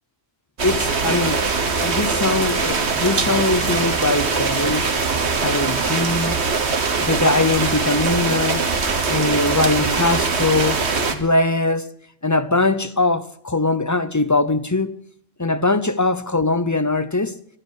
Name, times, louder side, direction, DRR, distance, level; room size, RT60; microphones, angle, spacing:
voice 1, 0.6-1.5 1.8-4.9 5.3-6.4 7.0-8.6 9.1-10.8 11.1-11.9 12.2-15.0 15.4-17.4, left 3 dB, 20° left, 0.5 m, -21 dB
sound 1, 0.6-11.1, right 4 dB, 60° right, 1.7 m, -22 dB
24.5 x 9.9 x 4.7 m
omnidirectional pair, 1.3 m